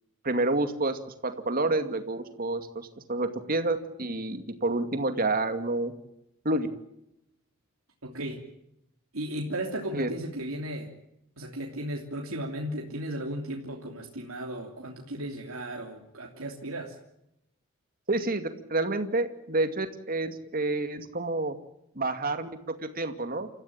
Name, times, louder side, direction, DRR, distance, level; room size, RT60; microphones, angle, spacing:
voice 1, 0.2-5.9 6.4-6.7 9.9-10.1 18.1-21.6 21.9-23.5, right 2 dB, 45° right, 8 dB, 2.4 m, -29 dB
voice 2, 8.0-8.5 9.1-10.9 11.4-16.9, right 1 dB, 90° right, 0 dB, 3.0 m, -35 dB
29.0 x 15.0 x 8.8 m, 0.82 s
head